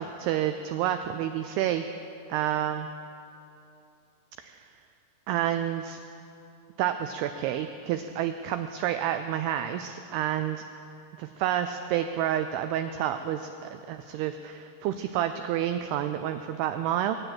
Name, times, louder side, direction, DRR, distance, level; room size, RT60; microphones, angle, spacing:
voice 1, 0.0-1.9 2.3-2.9 4.4-4.6 5.3-6.0 6.8-10.6 11.2-17.2, right 11 dB, 90° right, 8 dB, 2.3 m, -29 dB
20.0 x 8.9 x 7.8 m, 2.7 s
omnidirectional pair, 5.2 m